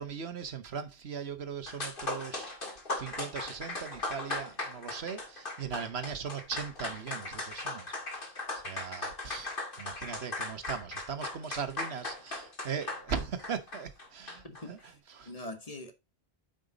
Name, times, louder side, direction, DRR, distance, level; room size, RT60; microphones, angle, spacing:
voice 1, 0.0-2.5 2.9-7.9 8.6-14.8 15.1-15.3, right 6 dB, 80° right, 1.3 m, -39 dB
sound 1, 1.4-1.5 1.7-14.6, left 2 dB, 55° left, 2.2 m, -38 dB
voice 2, 14.4-15.0 15.2-15.9, left 1 dB, 35° left, 1.5 m, -43 dB
9.0 x 5.3 x 3.9 m
omnidirectional pair, 1.1 m